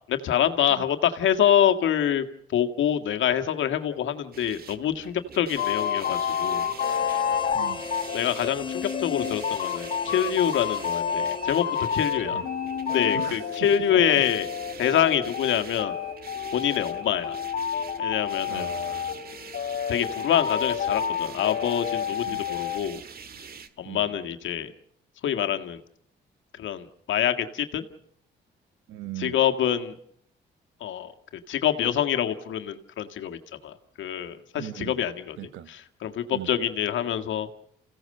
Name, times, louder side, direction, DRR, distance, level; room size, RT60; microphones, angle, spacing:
voice 1, 0.1-2.3 2.5-6.7 8.1-11.6 11.9-12.4 12.9-14.5 14.8-15.9 16.5-17.4 18.0-18.7 19.9-23.0 23.8-24.7 25.2-25.8 26.5-27.9 29.2-29.9 30.8-35.4 35.7-37.5, left 10 dB, 75° left, 1.8 m, -26 dB
sound 1, 4.3-23.7, right 6 dB, 50° right, 1.9 m, -45 dB
sound 2, 5.6-22.8, left 8 dB, 50° left, 1.3 m, -29 dB
Harmonica, 6.8-12.5, left 4 dB, 25° left, 0.9 m, -40 dB
voice 2, 7.5-7.9 12.3-12.5 13.1-13.7 14.1-14.2 18.5-19.2 22.2-22.5 23.8-24.1 28.9-29.4 34.6-35.0 35.4-35.7 36.3-36.5, right 13 dB, 85° right, 1.2 m, -39 dB
29.0 x 16.5 x 6.6 m
cardioid pair, 90°, 20 cm